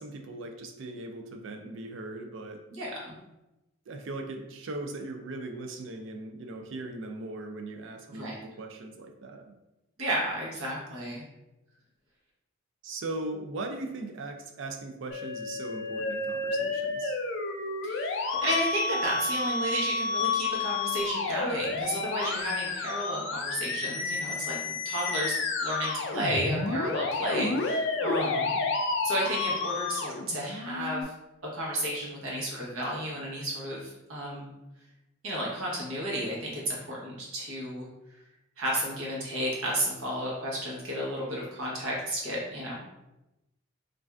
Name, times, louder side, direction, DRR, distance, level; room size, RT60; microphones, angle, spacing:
voice 1, 0.0-2.6 3.9-9.5 12.8-17.2 28.2-28.6, right 2 dB, 65° right, 5 dB, 0.4 m, -39 dB
voice 2, 2.7-3.1 8.1-8.4 10.0-11.2 17.8-24.6 24.8-28.6 29.0-31.1 31.5-34.5 35.2-37.9 38.6-42.8, equal, 85° right, -4 dB, 1.0 m, -32 dB
Musical instrument, 15.1-31.0, left 3 dB, 60° left, 0.3 m, -31 dB
3.2 x 2.5 x 2.3 m, 0.96 s
head